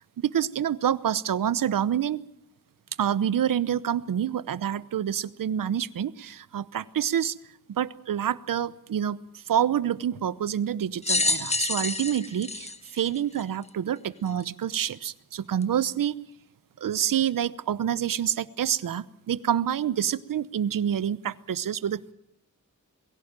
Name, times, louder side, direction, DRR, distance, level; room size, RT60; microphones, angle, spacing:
voice 1, 0.0-2.2 3.0-7.4 7.7-9.2 9.5-16.1 16.8-22.1, right 9 dB, 85° right, 17 dB, 1.0 m, -27 dB
sound 1, 11.0-13.7 14.4-14.5 15.6-15.7, left 3 dB, 20° left, 1.1 m, -28 dB
22.5 x 16.5 x 8.9 m, 0.73 s
wide cardioid pair, 160°, 32 cm